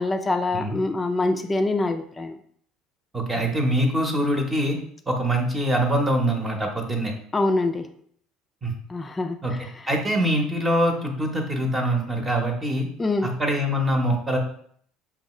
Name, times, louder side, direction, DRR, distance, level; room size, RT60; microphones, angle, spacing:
voice 1, 0.0-2.4 7.3-7.9 8.9-9.7 13.0-13.3, left 2 dB, 20° left, 6 dB, 0.4 m, -25 dB
voice 2, 3.1-4.8 5.1-7.1 8.6-8.7 9.4-9.5 9.9-12.9 13.2-14.4, right 1 dB, 25° right, 2 dB, 0.9 m, -24 dB
5.2 x 2.3 x 3.0 m, 0.62 s
hypercardioid pair, 75°, 0 cm